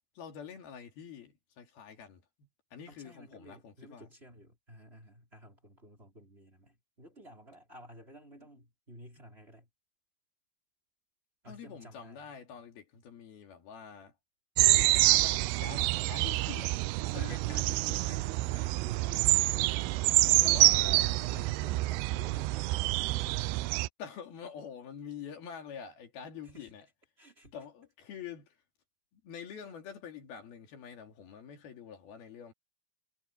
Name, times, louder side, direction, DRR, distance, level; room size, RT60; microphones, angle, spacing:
voice 1, 0.2-4.1 11.5-14.1 14.6-16.7 17.1-18.2 20.4-21.2 24.0-26.9 27.5-28.6 29.1-32.5, left 7 dB, 70° left, 4.4 m, -46 dB
voice 2, 2.9-9.7 11.4-12.3 17.2-17.9 18.5-20.0 20.4-23.1 26.4-26.7 27.2-27.6, equal, 15° right, 4.6 m, -52 dB
sound 1, 14.6-23.9, right 19 dB, 85° right, 2.6 m, -27 dB
omnidirectional pair, 4.5 m